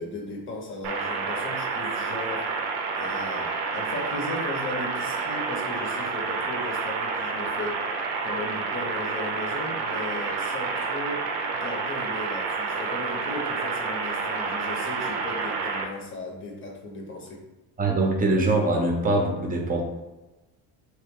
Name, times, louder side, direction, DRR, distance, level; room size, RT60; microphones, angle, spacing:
voice 1, 0.0-2.5 2.9-7.9 8.2-11.3 11.5-17.4, left 2 dB, 30° left, 1 dB, 0.9 m, -36 dB
sound 1, 0.8-15.8, right 4 dB, 65° right, 0.6 m, -29 dB
voice 2, 17.8-19.8, right 2 dB, 20° right, 1 dB, 0.7 m, -23 dB
3.0 x 2.2 x 3.6 m, 1.1 s
supercardioid pair, 100°, 41 cm